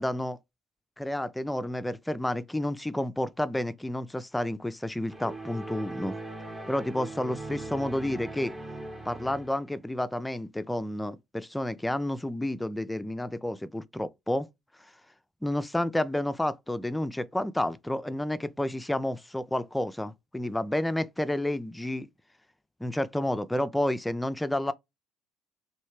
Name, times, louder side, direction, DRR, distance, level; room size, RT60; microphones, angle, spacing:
voice 1, 0.0-0.4 1.0-6.1 6.7-8.5 9.1-14.5 15.4-22.1 22.8-24.7, left 1 dB, 10° left, 0.4 m, -30 dB
sound 1, 5.1-9.7, right 2 dB, 20° right, 0.9 m, -40 dB
3.1 x 2.7 x 3.1 m
hypercardioid pair, 60°, 0 cm